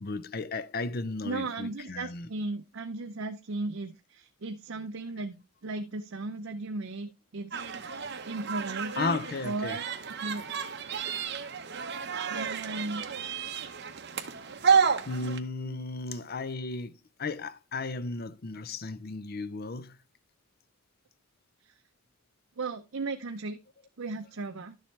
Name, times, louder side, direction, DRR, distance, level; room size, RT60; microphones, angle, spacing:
voice 1, 0.0-2.3 9.0-9.8 15.0-20.0, left 3 dB, 45° left, 0.6 m, -35 dB
voice 2, 1.2-7.6 8.2-9.9 10.2-10.5 12.3-13.1 15.5-15.8 16.1-16.2 21.6-21.7 22.6-23.6 24.0-24.8, right 3 dB, 70° right, 0.6 m, -36 dB
sound 1, 7.5-15.4, right 6 dB, 50° right, 1.0 m, -31 dB
11.5 x 7.2 x 3.3 m
head